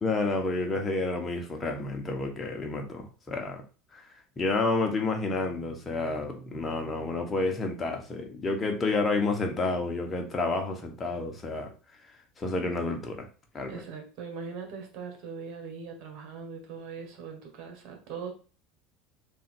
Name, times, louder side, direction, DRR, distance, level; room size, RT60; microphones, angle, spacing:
voice 1, 0.0-3.6 3.9-4.0 4.4-11.7 12.4-13.3 13.5-13.8, left 3 dB, 25° left, 1.2 m, -30 dB
voice 2, 13.7-18.3, right 5 dB, 60° right, 1.7 m, -40 dB
3.8 x 2.8 x 4.5 m
supercardioid pair, 105°, 0 cm